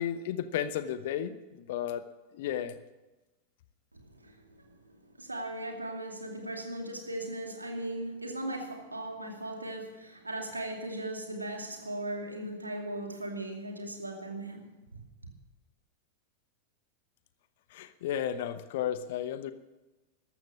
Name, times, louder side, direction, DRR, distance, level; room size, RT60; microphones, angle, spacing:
voice 1, 0.0-2.0 2.3-2.7 17.7-19.5, left 10 dB, 55° left, 12 dB, 0.9 m, -33 dB
voice 2, 3.9-15.0, right 1 dB, 80° right, 3 dB, 2.5 m, -38 dB
14.5 x 12.0 x 7.3 m, 1.1 s
figure-of-eight pair, 90°, 0 cm